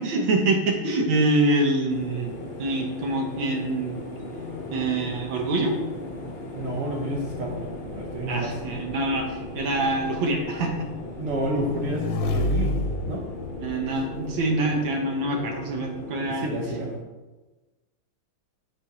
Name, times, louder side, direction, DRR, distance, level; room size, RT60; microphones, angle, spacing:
voice 1, 0.0-2.3 2.6-4.0 4.7-5.7 8.3-10.9 13.6-16.5, right 2 dB, 75° right, 2 dB, 1.6 m, -25 dB
sound 1, 1.9-17.0, left 2 dB, 40° left, 0.9 m, -37 dB
voice 2, 6.5-8.6 11.2-13.2 16.3-16.9, right 1 dB, 60° right, -2 dB, 0.9 m, -30 dB
Motorcycle / Engine, 7.3-14.4, left 2 dB, 80° left, 1.3 m, -32 dB
6.0 x 4.1 x 4.8 m, 1.2 s
omnidirectional pair, 2.2 m